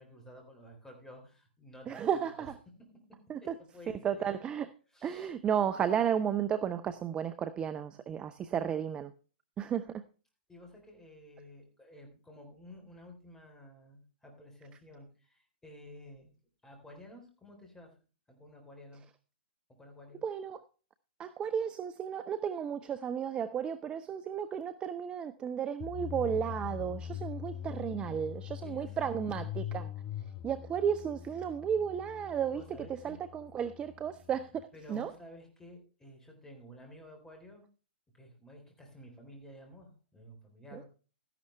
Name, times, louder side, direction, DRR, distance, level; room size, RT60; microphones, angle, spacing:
voice 1, 0.0-2.5 3.6-4.3 4.9-5.3 10.5-16.3 16.6-17.9 18.3-19.0 19.8-20.2 27.1-29.1 32.5-33.2 34.7-37.6 38.1-40.9, left 1 dB, 10° left, 3.8 m, -52 dB
voice 2, 1.9-2.6 3.3-3.6 3.9-4.7 5.0-9.1 9.6-10.0 20.2-20.6 21.2-29.9 30.4-32.6 32.9-35.1 40.7-40.8, right 8 dB, 15° right, 0.5 m, -33 dB
sound 1, 25.8-34.6, left 10 dB, 30° left, 0.7 m, -42 dB
13.5 x 11.0 x 3.3 m
figure-of-eight pair, 115°, 6 cm